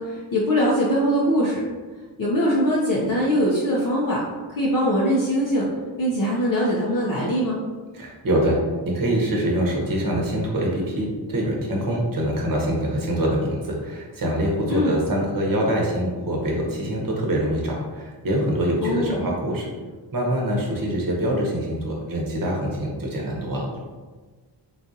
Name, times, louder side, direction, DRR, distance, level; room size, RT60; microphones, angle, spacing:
voice 1, 0.0-1.6 2.2-4.2 4.6-5.7 6.0-7.6 14.7-15.0 18.8-19.3, equal, 45° left, -5 dB, 0.7 m, -22 dB
voice 2, 7.9-8.6 8.8-19.7 20.1-23.7, right 1 dB, 50° right, -2 dB, 1.0 m, -24 dB
3.8 x 2.4 x 2.7 m, 1.4 s
cardioid pair, 90°, 45 cm